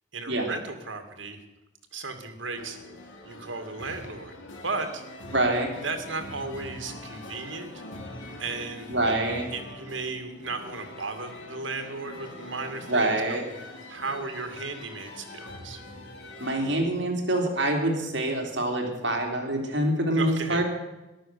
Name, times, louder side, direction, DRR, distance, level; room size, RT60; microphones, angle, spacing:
voice 1, 0.1-1.4 1.9-2.8 3.2-4.4 4.6-5.0 5.8-7.8 8.4-9.1 9.5-13.5 13.9-15.8 20.1-20.6, right 3 dB, 80° right, 7 dB, 2.3 m, -35 dB
sound 1, 2.6-16.9, left 1 dB, 90° left, 2.5 m, -43 dB
voice 2, 5.3-5.7 8.9-9.5 12.9-13.5 16.4-20.6, right 1 dB, 65° right, 2 dB, 3.3 m, -25 dB
14.0 x 11.5 x 6.9 m, 1.0 s
head